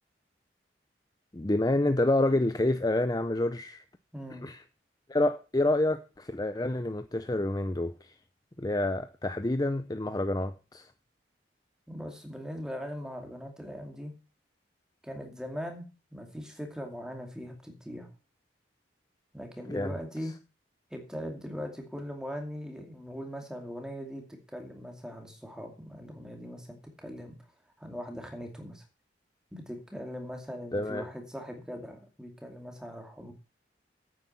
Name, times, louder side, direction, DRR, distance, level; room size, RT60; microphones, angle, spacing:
voice 1, 1.3-3.8 4.4-4.6 5.1-7.9 8.6-10.8 19.7-19.9 30.7-31.0, left 2 dB, 20° left, 0.6 m, -28 dB
voice 2, 4.1-4.4 11.9-14.1 15.0-15.8 16.1-18.1 19.3-20.3 20.9-27.4 27.8-28.8 29.5-33.3, equal, 5° right, 2.4 m, -40 dB
9.3 x 8.7 x 5.8 m
head